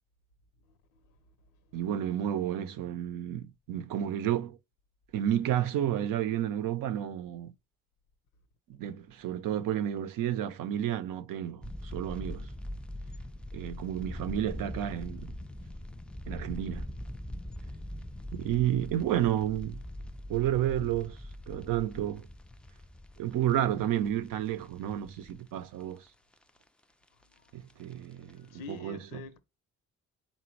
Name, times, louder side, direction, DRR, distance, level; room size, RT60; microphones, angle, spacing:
voice 1, 1.7-4.6 5.1-7.5 8.8-12.5 13.5-15.3 16.3-16.9 18.3-19.8 20.3-21.2 21.5-22.3 23.2-26.0 27.5-29.2, right 11 dB, 75° right, 0.6 m, -31 dB
sound 1, 11.6-25.7 26.1-26.2 26.3-26.6 27.5-27.9 28.3-28.4 28.7-28.8, left 1 dB, 5° left, 0.3 m, -42 dB
voice 2, 28.2-29.4, left 5 dB, 85° left, 0.8 m, -46 dB
4.1 x 2.2 x 4.4 m
supercardioid pair, 70°, 33 cm